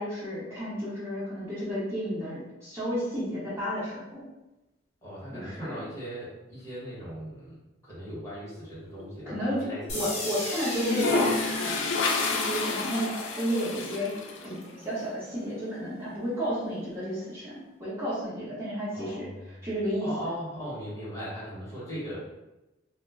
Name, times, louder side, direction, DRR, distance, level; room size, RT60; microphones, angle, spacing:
voice 1, 0.0-4.3 5.3-5.8 9.2-11.9 12.3-19.3 19.6-20.1, equal, 15° right, -10 dB, 0.8 m, -32 dB
voice 2, 5.0-7.6 7.8-10.2 18.9-19.7 20.0-22.2, equal, 15° left, -9 dB, 0.9 m, -39 dB
sound 1, 8.6-9.4 10.7-14.5, left 3 dB, 75° left, 0.4 m, -29 dB
sound 2, 9.9-15.8, left 1 dB, 35° left, 0.6 m, -38 dB
2.1 x 2.1 x 3.4 m, 0.99 s
head